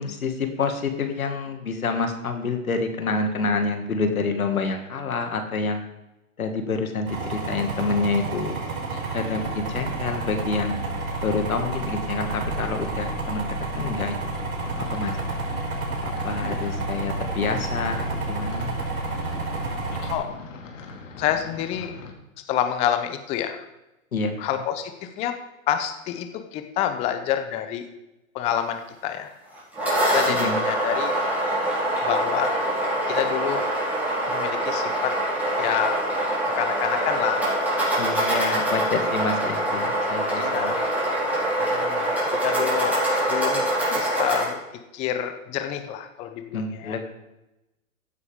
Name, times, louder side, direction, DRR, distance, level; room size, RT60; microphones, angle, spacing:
voice 1, 0.0-5.8 6.4-8.5 9.1-10.8 11.2-13.5 13.7-14.3 14.8-15.2 16.0-18.8 24.1-24.3 30.3-30.6 38.0-40.7 46.5-47.0, left 4 dB, 90° left, 6 dB, 2.0 m, -27 dB
sound 1, 7.1-20.2, right 3 dB, 85° right, 4.7 m, -30 dB
sound 2, 14.6-22.1, left 4 dB, 65° left, 2.3 m, -41 dB
voice 2, 21.2-21.9 22.5-23.7 24.4-25.4 25.7-27.9 28.3-29.3 30.1-31.1 32.0-32.6 33.1-33.7 34.3-35.1 35.6-36.0 36.4-37.4 37.7-37.8 40.4-40.9 41.6-43.0 43.3-44.6 44.9-47.0, left 10 dB, 15° left, 8 dB, 0.5 m, -28 dB
sound 3, 29.5-44.4, right 1 dB, 5° right, 4.6 m, -24 dB
15.0 x 8.4 x 3.6 m, 0.97 s
hypercardioid pair, 135°, 42 cm